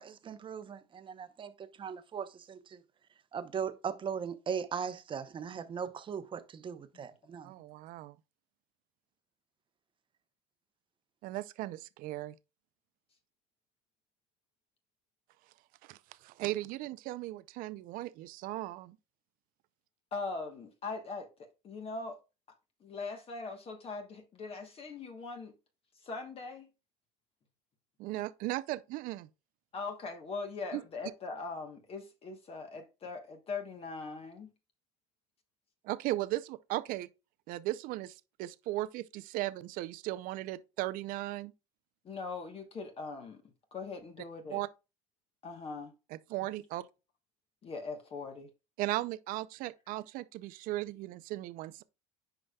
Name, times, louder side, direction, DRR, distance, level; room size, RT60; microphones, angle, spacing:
voice 1, 0.0-2.8 3.3-7.5, right 7 dB, 30° right, 0.8 m, -39 dB
voice 2, 7.4-8.1 11.2-12.3 15.9-16.0 16.2-19.0 28.0-29.3 30.7-30.8 35.8-37.1 37.5-41.5 44.5-44.7 46.3-46.8 48.8-51.8, right 17 dB, 60° right, 0.6 m, -37 dB
voice 3, 20.1-21.3 21.6-22.2 22.8-25.5 26.0-26.7 29.7-34.5 42.0-43.4 43.7-44.6 45.4-45.9 47.6-48.5, left 4 dB, 35° left, 1.2 m, -41 dB
8.9 x 5.0 x 2.3 m
supercardioid pair, 105°, 16 cm